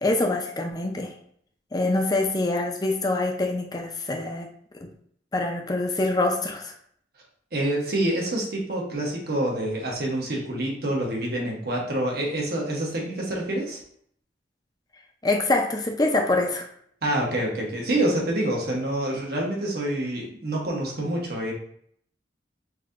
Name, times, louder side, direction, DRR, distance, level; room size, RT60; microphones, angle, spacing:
voice 1, 0.0-1.1 1.7-4.5 4.8-4.9 5.3-6.7 15.2-16.7, left 2 dB, 20° left, 3 dB, 0.5 m, -25 dB
voice 2, 7.5-13.8 17.0-21.5, right 1 dB, 60° right, -1 dB, 1.1 m, -27 dB
6.0 x 2.8 x 2.5 m, 0.65 s
head